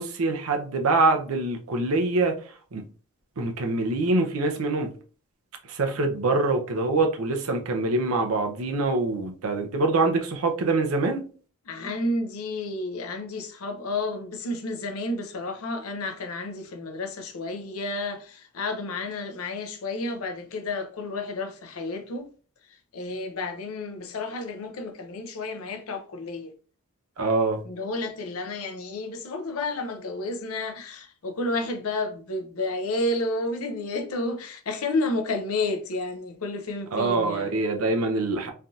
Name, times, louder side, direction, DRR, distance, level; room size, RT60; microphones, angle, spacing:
voice 1, 0.0-2.8 3.4-4.9 5.7-11.2 27.2-27.6 36.9-38.5, right 3 dB, 80° right, 0.6 m, -24 dB
voice 2, 11.7-22.2 22.9-26.5 27.6-37.5, left 2 dB, 85° left, 0.6 m, -31 dB
3.3 x 2.7 x 2.4 m
head